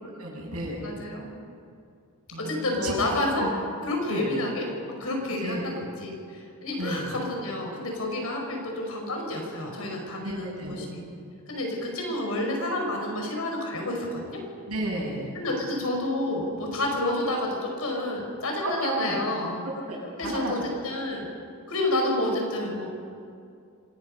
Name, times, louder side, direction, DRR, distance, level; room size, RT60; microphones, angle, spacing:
voice 1, 0.0-0.8 2.3-2.9 3.4-3.5 4.1-4.3 5.4-5.7 6.8-7.1 10.2-10.8 14.7-15.3 18.6-19.3 19.6-20.7, right 1 dB, 80° right, -3 dB, 7.1 m, -33 dB
voice 2, 0.8-1.3 2.4-3.5 3.8-4.7 5.0-11.0 11.5-14.4 15.4-17.5 17.8-19.6 20.2-20.6 20.8-21.2 21.7-22.9, left 1 dB, 75° left, 1 dB, 5.3 m, -29 dB
25.5 x 19.0 x 5.5 m, 2.4 s
head